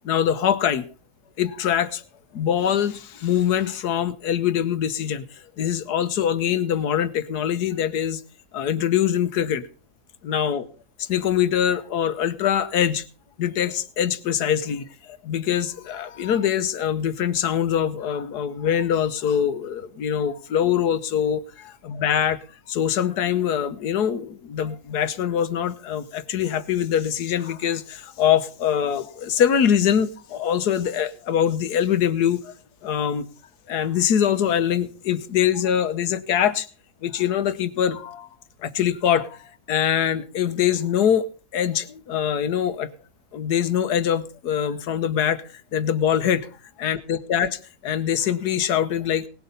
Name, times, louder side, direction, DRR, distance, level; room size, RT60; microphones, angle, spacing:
voice 1, 0.0-0.8 1.4-2.0 2.3-5.2 5.6-8.2 8.5-9.7 10.2-10.7 11.0-13.1 13.4-14.9 15.2-22.4 22.7-32.5 32.8-33.2 33.7-36.7 37.0-38.3 38.6-41.3 41.5-42.9 43.3-45.4 45.7-46.5 46.8-49.3, left 9 dB, 80° left, 1.5 m, -23 dB
18.5 x 8.1 x 5.4 m
omnidirectional pair, 1.7 m